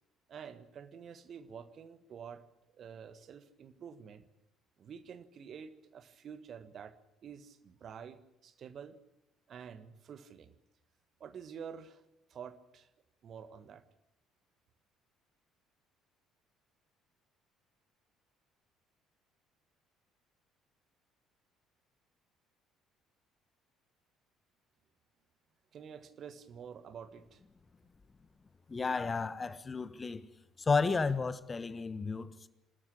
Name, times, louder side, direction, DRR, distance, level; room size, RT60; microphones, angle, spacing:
voice 1, 0.3-2.4 2.7-4.2 4.8-6.9 7.2-9.0 9.5-10.5 11.2-12.0 12.3-12.9 13.2-13.8 25.7-27.4, right 7 dB, 50° right, 1.5 m, -48 dB
voice 2, 28.7-30.2 30.6-32.5, left 4 dB, 25° left, 1.4 m, -32 dB
26.5 x 14.0 x 8.6 m
figure-of-eight pair, 50°, 0 cm